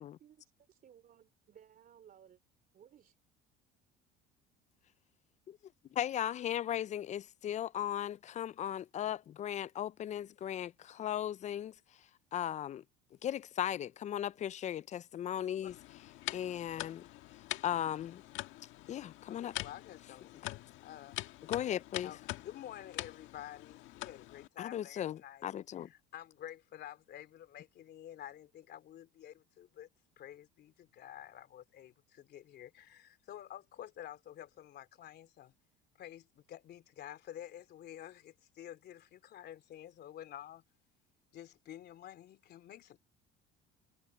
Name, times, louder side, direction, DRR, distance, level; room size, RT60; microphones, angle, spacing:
voice 1, 0.0-2.4 2.7-3.2, right 9 dB, 45° right, 3.3 m, -60 dB
voice 2, 6.0-11.7 12.3-12.8 13.2-15.7 16.3-17.0 17.6-18.2 18.9-19.5 21.5-22.1 24.6-25.9, left 10 dB, 35° left, 0.4 m, -37 dB
sound 1, 15.7-24.5, left 17 dB, 70° left, 1.5 m, -45 dB
voice 3, 19.3-21.2 22.0-25.4 25.8-29.9 30.2-35.5 36.0-40.6 41.3-43.0, left 11 dB, 50° left, 3.1 m, -50 dB
supercardioid pair, 105°, 21 cm